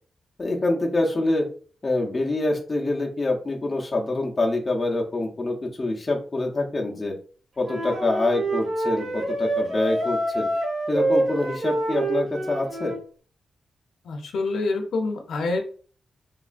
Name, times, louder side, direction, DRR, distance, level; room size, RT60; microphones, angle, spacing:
voice 1, 0.4-1.5 1.8-7.1 7.6-10.5 10.9-12.9, left 2 dB, 25° left, -1 dB, 0.5 m, -25 dB
Wind instrument woodwind instrument, 7.6-13.0, right 1 dB, 65° right, 1.2 m, -27 dB
voice 2, 14.0-15.6, left 3 dB, 85° left, 3 dB, 0.5 m, -26 dB
3.0 x 2.3 x 2.4 m, 0.42 s
wide cardioid pair, 140°, 0 cm